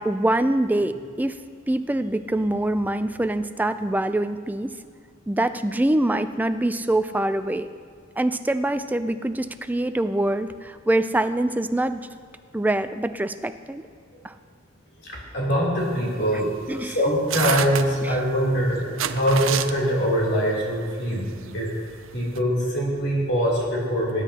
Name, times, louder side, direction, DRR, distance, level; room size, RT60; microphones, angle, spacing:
voice 1, 0.0-1.4 1.7-4.7 5.3-7.7 8.2-12.0 12.5-13.8 14.2-14.3 16.7-17.0 18.0-18.2, right 1 dB, 10° right, 10 dB, 0.4 m, -24 dB
voice 2, 15.1-16.5 16.8-21.3 21.5-21.7 22.1-24.2, equal, 60° left, -5 dB, 3.1 m, -23 dB
sound 1, 15.8-22.4, right 9 dB, 80° right, 0.5 m, -30 dB
19.0 x 9.9 x 2.8 m, 2.2 s
head